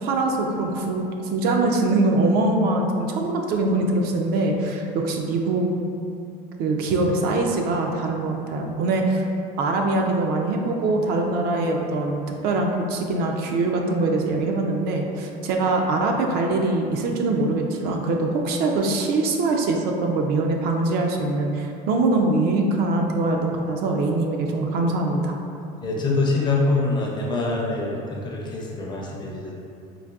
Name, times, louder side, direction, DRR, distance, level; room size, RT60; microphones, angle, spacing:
voice 1, 0.0-5.7 6.6-9.3 9.6-25.4, right 2 dB, 60° right, 2 dB, 0.4 m, -23 dB
voice 2, 25.8-29.5, left 3 dB, 25° left, -2 dB, 0.5 m, -24 dB
3.8 x 2.5 x 2.3 m, 2.6 s
supercardioid pair, 120°, 19 cm